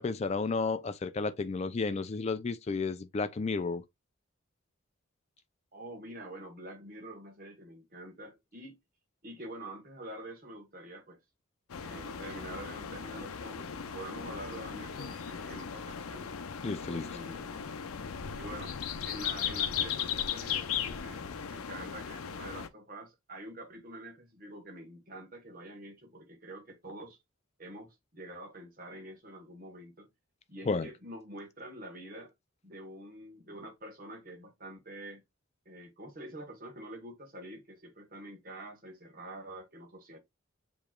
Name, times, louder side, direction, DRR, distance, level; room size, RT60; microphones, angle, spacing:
voice 1, 0.0-3.8 16.6-17.1 30.7-30.9, left 4 dB, 30° left, 0.3 m, -32 dB
voice 2, 5.7-8.8 9.2-11.2 11.8-16.3 16.9-17.8 18.4-18.8 19.0-27.2 27.6-30.1 30.5-32.3 32.6-35.2 35.6-40.2, right 1 dB, 40° right, 1.2 m, -46 dB
sound 1, 11.7-22.7, left 8 dB, 90° left, 0.5 m, -37 dB
6.9 x 3.0 x 2.2 m
head